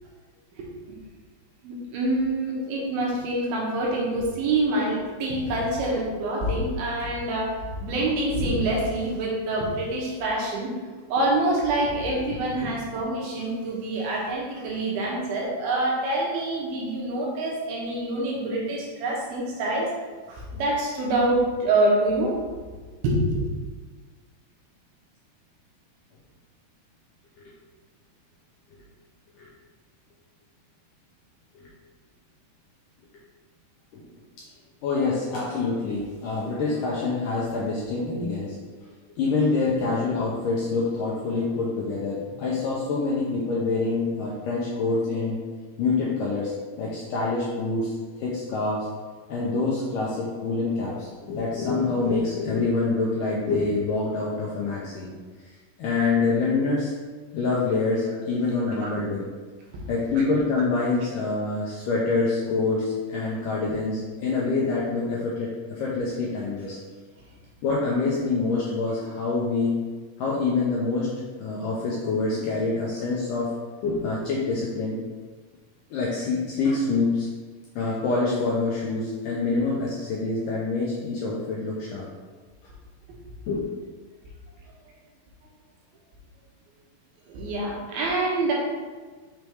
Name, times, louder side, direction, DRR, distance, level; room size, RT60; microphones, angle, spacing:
voice 1, 1.6-10.7 11.1-19.9 20.3-22.4 23.0-23.5 58.7-58.9 87.3-88.5, right 2 dB, 70° right, -3 dB, 2.8 m, -26 dB
voice 2, 34.8-38.6 39.2-45.4 45.8-48.9 49.3-55.1 55.8-56.9 57.3-59.3 59.9-66.8 67.6-69.8 70.2-71.1 71.4-73.5 73.8-75.0 75.9-77.3 77.8-82.1 83.5-83.6, left 3 dB, 75° left, -5 dB, 2.0 m, -26 dB
6.6 x 3.5 x 4.5 m, 1.4 s
omnidirectional pair, 4.6 m